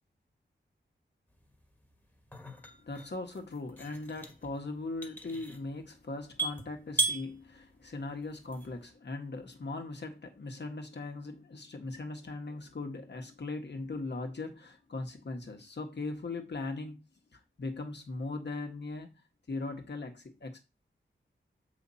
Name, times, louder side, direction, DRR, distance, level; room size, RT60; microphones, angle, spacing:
sound 1, 1.4-8.9, right 2 dB, 10° left, 1.7 m, -38 dB
voice 1, 2.8-17.0 17.3-19.1 19.5-20.6, left 3 dB, 60° left, 1.6 m, -39 dB
7.3 x 5.6 x 4.2 m
wide cardioid pair, 80°, 20 cm